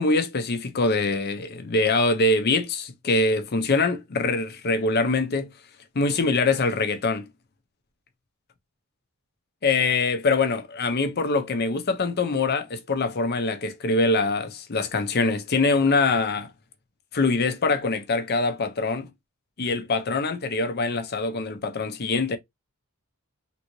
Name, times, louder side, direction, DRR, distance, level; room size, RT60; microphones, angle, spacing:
voice 1, 0.0-5.5 5.9-7.3 9.6-16.5 17.1-19.1 19.6-22.4, left 3 dB, 50° left, 0.6 m, -24 dB
3.4 x 2.6 x 3.0 m
head